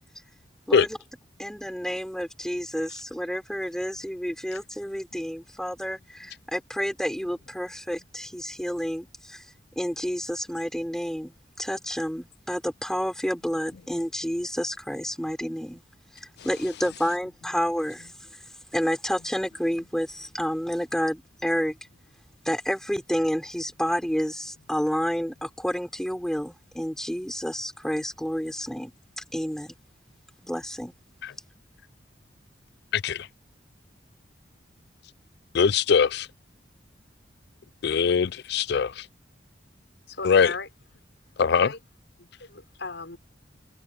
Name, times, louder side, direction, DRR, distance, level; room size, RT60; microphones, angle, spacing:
voice 1, 1.4-9.4 9.8-15.8 16.1-18.1 18.7-21.8 22.5-28.9 29.3-29.7 30.4-30.9, equal, 5° left, 3.7 m, -30 dB
voice 2, 32.9-33.3 35.5-36.3 37.8-39.1 40.2-40.5 41.4-41.7, left 6 dB, 65° left, 0.4 m, -21 dB
voice 3, 40.1-40.7 41.6-41.8 42.2-43.2, left 4 dB, 80° left, 5.5 m, -37 dB
head